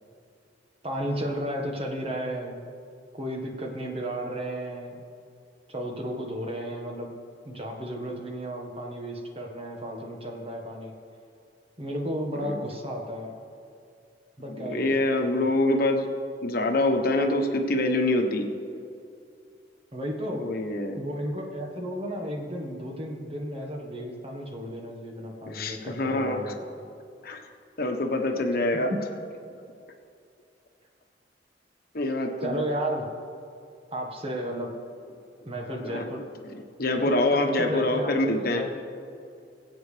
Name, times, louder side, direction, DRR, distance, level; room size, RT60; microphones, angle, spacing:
voice 1, 0.8-2.7 3.1-5.0 5.7-7.1 7.4-10.9 11.8-13.3 14.4-14.9 15.2-15.4 19.9-20.5 20.9-26.9 28.9-29.0 32.4-33.0 33.9-34.7 35.4-36.3 37.0-38.7, equal, 35° right, 1 dB, 1.5 m, -33 dB
voice 2, 14.5-16.1 16.4-18.5 20.4-21.0 25.5-26.5 27.2-27.4 27.8-28.9 31.9-32.6 35.8-36.1 36.5-38.6, left 2 dB, 55° left, 4 dB, 1.2 m, -25 dB
21.5 x 8.7 x 3.4 m, 2.5 s
head